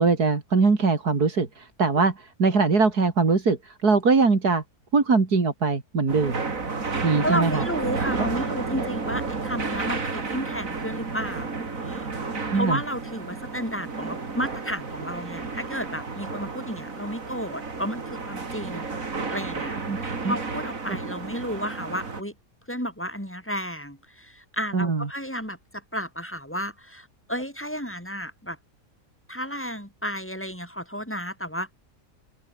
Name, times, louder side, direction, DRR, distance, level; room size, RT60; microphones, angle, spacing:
voice 1, 0.0-4.6 4.9-6.4 7.0-7.6 8.2-8.3 12.5-12.8 19.9-20.0 20.2-20.3 20.9-21.0 24.7-25.1, right 4 dB, 70° right, 3.5 m, -22 dB
sound 1, 6.1-22.2, right 4 dB, 55° right, 3.2 m, -32 dB
voice 2, 7.2-12.1 12.5-22.3 22.7-25.6 25.9-28.6 29.3-31.7, equal, 5° left, 6.9 m, -32 dB
open air
omnidirectional pair, 1.7 m